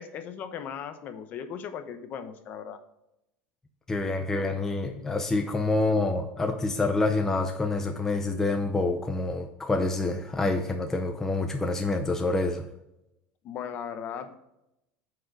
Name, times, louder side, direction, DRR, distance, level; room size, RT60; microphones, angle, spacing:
voice 1, 0.0-2.8 13.4-14.4, left 7 dB, 40° left, 9 dB, 0.9 m, -37 dB
voice 2, 3.9-12.7, left 2 dB, 10° left, 4 dB, 0.6 m, -27 dB
9.1 x 4.7 x 4.8 m, 0.86 s
supercardioid pair, 155°, 5 cm